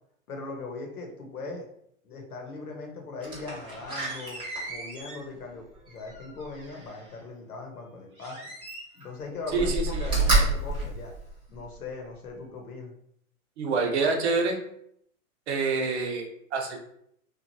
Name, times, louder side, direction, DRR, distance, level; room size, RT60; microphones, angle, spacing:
voice 1, 0.3-1.7 2.0-4.4 4.7-8.4 8.9-11.1 11.5-12.9, left 3 dB, 90° left, 1 dB, 1.0 m, -39 dB
Slam, 3.2-7.1 8.2-9.1 9.5-11.8 12.3-12.4, right 2 dB, 10° right, 0.8 m, -30 dB
voice 2, 9.5-10.1 13.6-14.6 15.5-16.8, right 4 dB, 50° right, 3 dB, 0.7 m, -27 dB
3.0 x 2.4 x 2.6 m, 0.72 s
hypercardioid pair, 135°, 43 cm